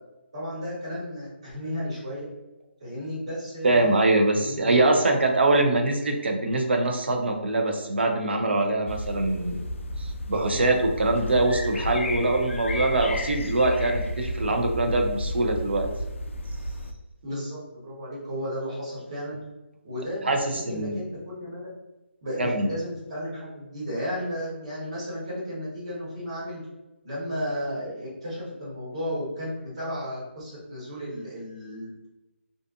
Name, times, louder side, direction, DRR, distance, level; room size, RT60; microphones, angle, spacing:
voice 1, 0.3-2.2 2.8-4.0 4.3-5.2 17.2-19.4 19.8-21.7 22.2-26.6 27.0-32.1, equal, 30° right, -7 dB, 1.1 m, -34 dB
voice 2, 3.6-9.7 10.0-15.9 20.2-21.0 22.4-22.7, right 2 dB, 55° right, 3 dB, 0.5 m, -23 dB
sound 1, 8.9-16.9, left 1 dB, 75° left, 0.3 m, -32 dB
2.5 x 2.4 x 2.4 m, 0.99 s
hypercardioid pair, 175°, 7 cm